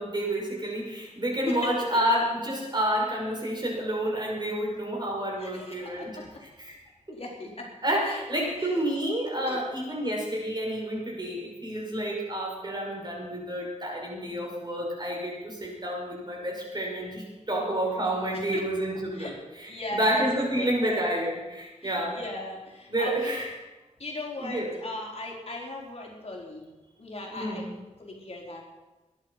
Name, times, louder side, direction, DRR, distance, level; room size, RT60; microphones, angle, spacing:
voice 1, 0.0-6.7 7.8-22.2 22.9-23.6 24.4-24.7 27.3-27.7, right 1 dB, 35° right, -1 dB, 6.0 m, -29 dB
voice 2, 1.5-2.0 5.4-6.4 7.1-7.7 8.0-8.8 9.4-9.6 18.3-18.6 19.1-19.3 19.7-20.3 20.6-21.0 21.8-23.4 24.0-26.6 27.0-27.6 28.0-28.6, left 2 dB, 50° left, -1 dB, 4.2 m, -38 dB
21.0 x 10.5 x 5.8 m, 1.1 s
wide cardioid pair, 75°, 13 cm